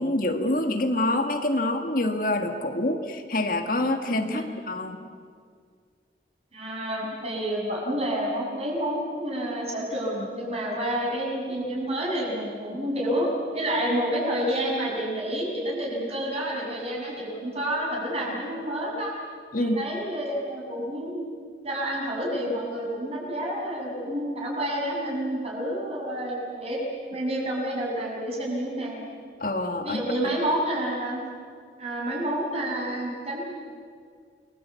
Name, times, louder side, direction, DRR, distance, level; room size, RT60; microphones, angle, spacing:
voice 1, 0.0-5.0 19.5-19.8 29.4-30.0, left 1 dB, 50° left, 5 dB, 1.7 m, -26 dB
voice 2, 6.5-19.1 19.6-21.2 21.6-26.8 27.1-29.0 29.8-31.2 31.8-33.5, right 1 dB, 35° right, -2 dB, 7.3 m, -29 dB
29.0 x 21.5 x 8.3 m, 2.1 s
head